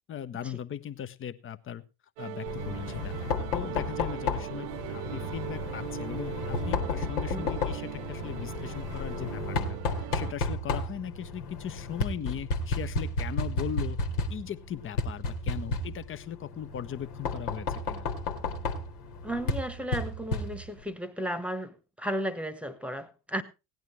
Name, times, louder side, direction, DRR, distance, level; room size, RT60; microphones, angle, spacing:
voice 1, 0.1-1.8 2.2-14.0 14.3-18.1, left 9 dB, 25° left, 13 dB, 0.9 m, -39 dB
sound 1, 2.2-10.3, right 18 dB, 50° right, 0.5 m, -40 dB
Knock, 2.5-20.9, left 3 dB, 65° left, 1.9 m, -33 dB
voice 2, 19.2-23.4, right 1 dB, 5° right, 14 dB, 1.3 m, -34 dB
17.5 x 10.5 x 3.2 m, 0.27 s
figure-of-eight pair, 70°, 48 cm